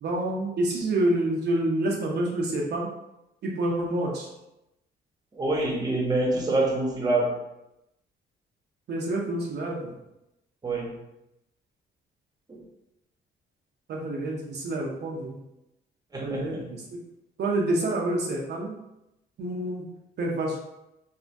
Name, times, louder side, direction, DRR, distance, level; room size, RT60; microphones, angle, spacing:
voice 1, 0.0-2.9 3.4-4.3 8.9-9.9 13.9-15.4 16.2-16.8 17.4-18.7 19.4-19.9 20.2-20.6, right 1 dB, 60° right, -2 dB, 0.6 m, -28 dB
voice 2, 5.3-7.4 10.6-11.0 12.5-12.6 16.1-16.7, right 2 dB, 20° right, -1 dB, 0.7 m, -26 dB
3.3 x 2.1 x 2.6 m, 0.89 s
cardioid pair, 90°, 20 cm